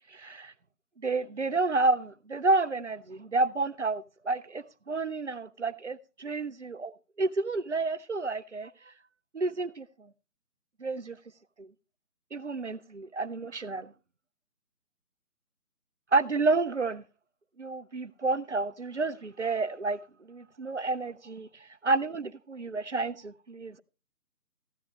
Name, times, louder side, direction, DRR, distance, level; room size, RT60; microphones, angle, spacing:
voice 1, 0.1-0.5 1.0-6.9 7.2-8.9 9.3-9.9 10.8-11.2 11.6-11.7 12.3-13.9 16.1-17.0 17.6-20.0 20.3-21.5 21.8-23.8, right 3 dB, 50° right, 0.5 m, -30 dB
14.5 x 9.2 x 3.1 m
figure-of-eight pair, 160°, 47 cm